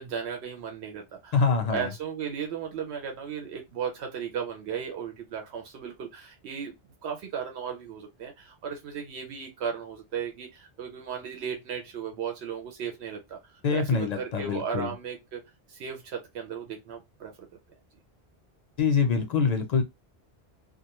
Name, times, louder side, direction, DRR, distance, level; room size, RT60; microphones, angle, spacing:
voice 1, 0.0-1.4 1.7-6.7 7.0-15.4 15.7-17.3, right 7 dB, 85° right, 0.9 m, -35 dB
voice 2, 1.3-1.9 13.6-14.9 18.8-19.8, left 5 dB, 55° left, 0.5 m, -25 dB
2.4 x 2.1 x 2.9 m
omnidirectional pair, 1.1 m